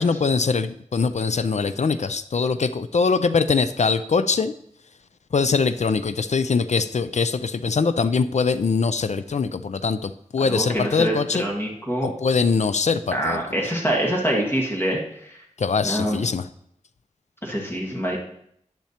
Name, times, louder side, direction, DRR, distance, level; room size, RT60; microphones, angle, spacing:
voice 1, 0.0-4.5 5.3-11.4 12.0-13.4 15.6-16.5, left 5 dB, 60° left, 12 dB, 0.4 m, -22 dB
voice 2, 10.4-12.1 13.1-15.4 15.8-16.2 17.4-18.2, right 1 dB, 15° left, -2 dB, 1.6 m, -25 dB
10.5 x 10.5 x 2.9 m, 0.70 s
wide cardioid pair, 80°, 13 cm